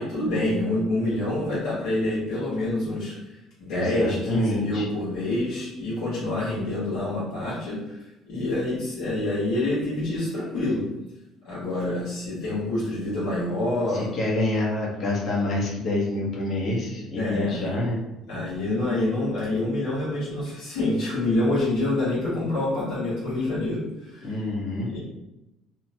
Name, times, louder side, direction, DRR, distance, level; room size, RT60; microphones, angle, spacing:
voice 1, 0.0-3.3 3.6-8.0 8.3-10.8 11.4-14.1 17.1-17.8 18.3-24.4 24.9-25.0, left 1 dB, 85° left, -9 dB, 1.3 m, -27 dB
voice 2, 3.7-4.8 13.9-18.0 24.2-24.9, left 2 dB, 45° left, -4 dB, 0.9 m, -27 dB
2.9 x 2.1 x 2.7 m, 0.94 s
cardioid pair, 115°, 0 cm